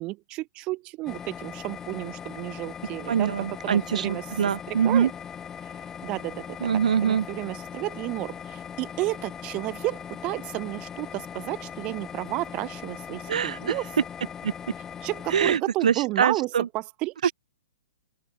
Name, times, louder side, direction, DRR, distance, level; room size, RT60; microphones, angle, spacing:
voice 1, 0.0-3.3 3.6-4.2 4.7-5.1 5.6-6.7 7.0-13.9 15.0-17.3, right 20 dB, 25° right, 0.7 m, -32 dB
sound 1, 1.1-15.6, left 8 dB, 10° left, 1.0 m, -40 dB
voice 2, 3.1-5.1 6.6-7.3 13.3-13.7 14.4-14.5 15.3-16.7, right 8 dB, 80° right, 0.5 m, -24 dB
open air
hypercardioid pair, 155°, 4 cm